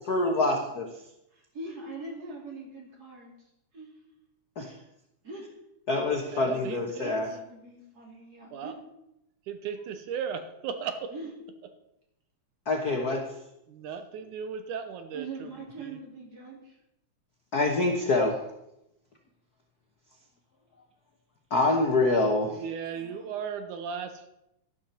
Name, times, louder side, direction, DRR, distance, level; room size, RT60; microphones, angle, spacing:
voice 1, 0.1-0.9 4.6-4.7 5.9-7.3 12.7-13.2 17.5-18.4 21.5-22.6, left 2 dB, 75° left, 2 dB, 0.8 m, -25 dB
voice 2, 1.3-3.3 3.7-3.9 5.2-5.5 7.0-8.7 11.1-11.3 15.1-16.8 22.9-23.3, right 3 dB, 30° right, -1 dB, 3.4 m, -42 dB
voice 3, 6.3-7.4 8.5-8.8 9.5-11.1 13.7-15.5 15.8-16.0 22.5-24.3, right 7 dB, 80° right, 8 dB, 2.4 m, -36 dB
12.5 x 12.0 x 4.4 m, 0.84 s
omnidirectional pair, 3.6 m